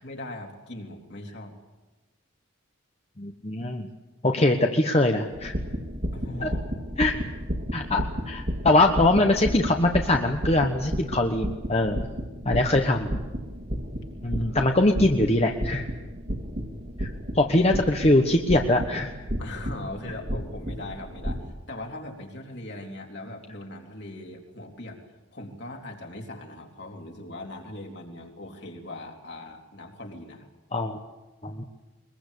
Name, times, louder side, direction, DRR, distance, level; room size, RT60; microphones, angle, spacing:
voice 1, 0.0-1.6 6.1-7.2 14.4-14.6 19.4-30.5, left 1 dB, 55° left, 1 dB, 3.7 m, -40 dB
voice 2, 3.2-3.9 4.2-5.5 6.4-6.5 7.0-7.2 7.7-12.0 12.4-13.2 14.2-15.9 17.0-17.1 17.3-19.1 30.7-31.0 31.4-31.6, left 2 dB, 30° left, 3 dB, 1.2 m, -22 dB
sound 1, 5.3-21.5, equal, 50° right, 2.5 m, -33 dB
22.5 x 22.0 x 8.4 m, 1.2 s
head